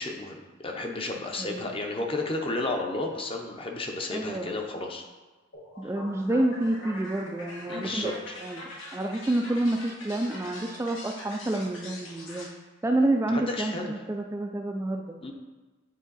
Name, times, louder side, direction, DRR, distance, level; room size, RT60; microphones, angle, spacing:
voice 1, 0.0-5.0 7.7-8.1 13.3-13.9 15.2-15.3, left 2 dB, 30° left, 2 dB, 0.7 m, -32 dB
voice 2, 1.4-1.7 4.1-4.5 5.8-8.1 8.4-12.5 12.8-15.2, right 1 dB, 15° right, 2 dB, 0.3 m, -28 dB
sound 1, 5.5-12.5, left 1 dB, 80° left, 1.5 m, -43 dB
8.5 x 3.6 x 4.0 m, 1.3 s
head